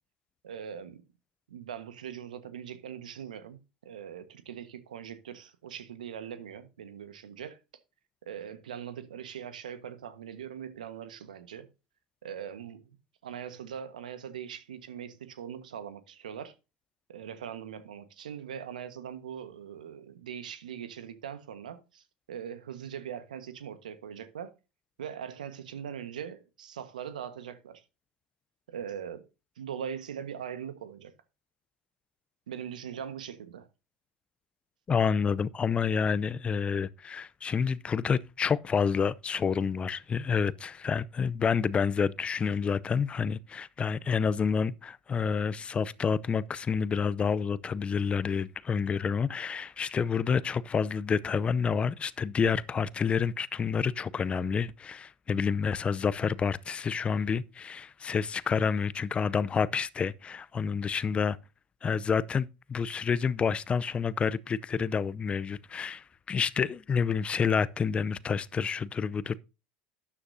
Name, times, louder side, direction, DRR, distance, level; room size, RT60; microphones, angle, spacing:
voice 1, 0.4-1.0 1.5-7.6 8.3-11.7 12.2-12.9 13.2-16.5 17.1-24.5 25.0-27.8 28.7-29.2 29.6-31.1 32.5-33.7, right 8 dB, 85° right, 1.4 m, -41 dB
voice 2, 34.9-61.4 61.8-69.4, left 6 dB, 25° left, 0.6 m, -29 dB
12.5 x 9.8 x 2.7 m
hypercardioid pair, 85°, 4 cm